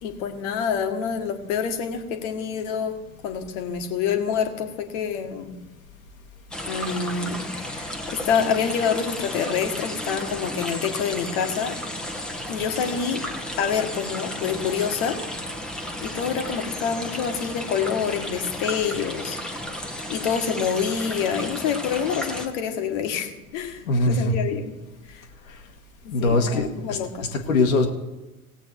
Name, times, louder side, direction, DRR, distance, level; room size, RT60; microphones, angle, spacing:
voice 1, 0.0-2.9 3.2-5.5 6.7-11.8 12.5-13.2 13.6-15.1 16.0-19.4 20.1-24.7 25.1-25.2 26.2-27.3, left 7 dB, 50° left, 6 dB, 1.7 m, -27 dB
sound 1, 6.5-22.5, left 1 dB, ahead, 1.3 m, -33 dB
voice 2, 23.9-24.4 26.1-27.0 27.3-27.9, left 2 dB, 70° left, 3 dB, 1.7 m, -21 dB
17.5 x 8.1 x 4.6 m, 1.1 s
figure-of-eight pair, 75°, 43 cm